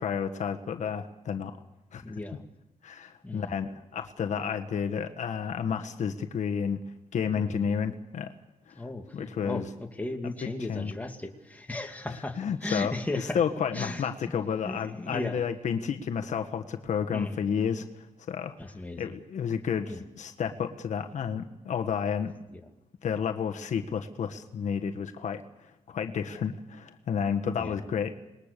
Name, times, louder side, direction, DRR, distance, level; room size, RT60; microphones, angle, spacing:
voice 1, 0.0-1.5 1.9-2.0 2.8-6.8 7.1-8.3 8.7-8.8 9.1-9.7 10.4-10.9 12.4-18.5 19.0-22.3 23.0-25.4 25.9-28.1, left 7 dB, 75° left, 6 dB, 1.5 m, -31 dB
voice 2, 2.0-2.5 3.2-3.5 7.3-7.6 8.8-13.4 13.7-14.1 14.6-15.4 17.1-17.4 18.6-19.1 19.8-20.0 22.5-22.6 27.6-27.8, left 2 dB, 10° left, 4 dB, 2.3 m, -36 dB
26.5 x 21.0 x 6.8 m, 0.93 s
wide cardioid pair, 120°, 13 cm